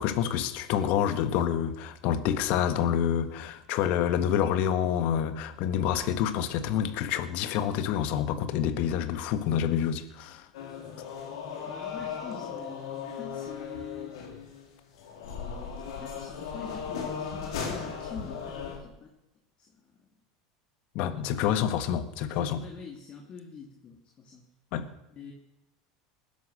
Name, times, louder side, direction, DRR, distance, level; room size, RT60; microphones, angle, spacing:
voice 1, 0.0-10.5 21.0-22.7 24.7-24.9, left 9 dB, 60° left, 11 dB, 1.6 m, -27 dB
sound 1, 10.5-18.8, left 6 dB, 85° left, 3.7 m, -37 dB
voice 2, 11.6-14.1 15.8-19.1 19.6-19.7 21.3-21.4 22.3-24.4 25.2-25.3, left 6 dB, 40° left, 1 dB, 2.7 m, -44 dB
20.0 x 11.5 x 6.5 m, 0.92 s
supercardioid pair, 100°, 3 cm